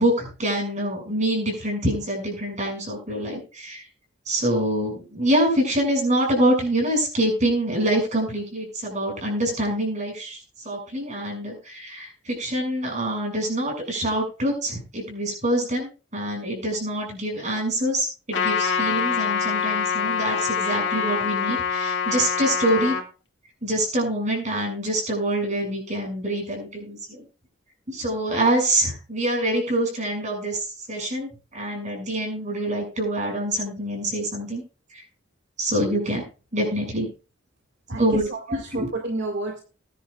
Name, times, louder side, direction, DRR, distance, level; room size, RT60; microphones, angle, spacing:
voice 1, 0.0-3.8 4.3-10.4 10.6-23.0 23.6-27.2 27.9-30.6 30.9-34.6 35.6-36.2 36.5-37.1 38.0-38.2 38.5-38.9, right 1 dB, 40° right, 1 dB, 6.6 m, -25 dB
Trumpet, 18.3-23.0, left 6 dB, 65° left, 2.3 m, -25 dB
voice 2, 37.9-39.6, right 2 dB, 65° right, 3 dB, 2.1 m, -30 dB
20.0 x 10.5 x 2.4 m, 0.34 s
head